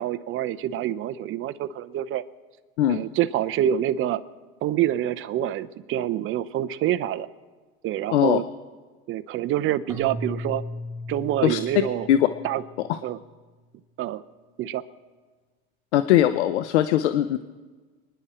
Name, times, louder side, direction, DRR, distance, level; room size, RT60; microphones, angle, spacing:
voice 1, 0.0-2.2 2.9-4.2 4.6-7.3 7.8-8.4 9.1-10.6 11.1-12.1 12.4-12.6 13.0-13.2 14.0-14.2 14.6-14.8, right 12 dB, 40° right, 13 dB, 0.8 m, -26 dB
Keyboard (musical), 9.9-13.0, left 1 dB, 10° right, 1.3 m, -36 dB
voice 2, 15.9-17.4, left 12 dB, 90° left, 12 dB, 0.7 m, -20 dB
28.0 x 10.5 x 4.4 m, 1.4 s
supercardioid pair, 120°, 33 cm